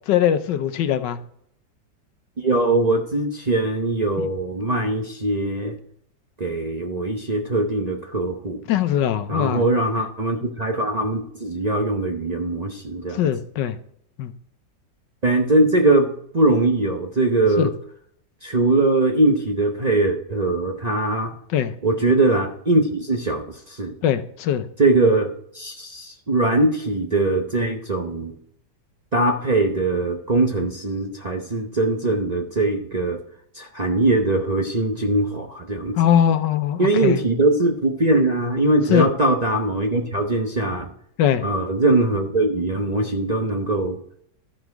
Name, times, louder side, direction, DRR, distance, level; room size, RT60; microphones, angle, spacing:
voice 1, 0.1-1.2 4.2-4.3 8.7-9.6 13.2-13.7 14.2-14.3 17.6-17.7 21.5-21.7 24.0-24.6 36.0-37.2 38.9-39.1 41.2-41.4, left 10 dB, 85° left, 11 dB, 1.4 m, -20 dB
voice 2, 2.4-5.8 6.4-8.6 9.3-13.2 15.2-17.7 18.4-21.3 21.8-23.9 24.8-28.3 29.1-33.2 33.5-36.0 36.8-40.9 41.4-44.0, right 2 dB, 35° right, 3 dB, 0.7 m, -21 dB
13.0 x 5.0 x 4.7 m, 0.66 s
omnidirectional pair, 1.9 m